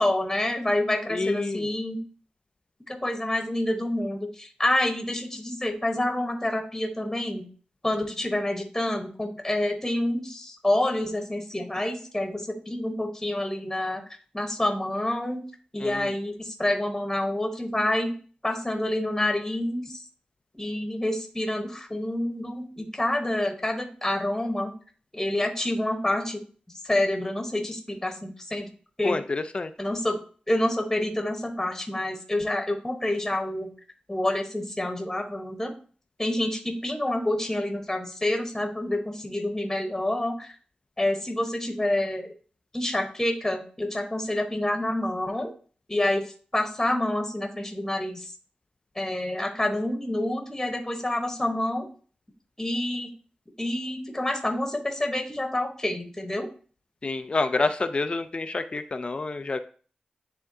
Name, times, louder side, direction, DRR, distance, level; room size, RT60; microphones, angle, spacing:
voice 1, 0.0-2.0 2.9-7.4 7.8-14.0 14.3-15.4 15.7-18.1 18.4-20.0 20.5-24.7 25.1-26.4 26.8-28.7 29.0-29.2 29.8-30.2 30.5-33.7 34.1-35.7 36.2-40.5 41.0-42.3 42.7-45.5 45.9-48.3 48.9-51.9 52.6-53.1 53.6-56.5, left 1 dB, 10° left, 3 dB, 1.1 m, -28 dB
voice 2, 1.1-1.7 15.8-16.1 29.0-29.7 57.0-59.6, left 3 dB, 40° left, 9 dB, 0.4 m, -28 dB
9.8 x 3.6 x 2.7 m, 0.41 s
wide cardioid pair, 110°, 3 cm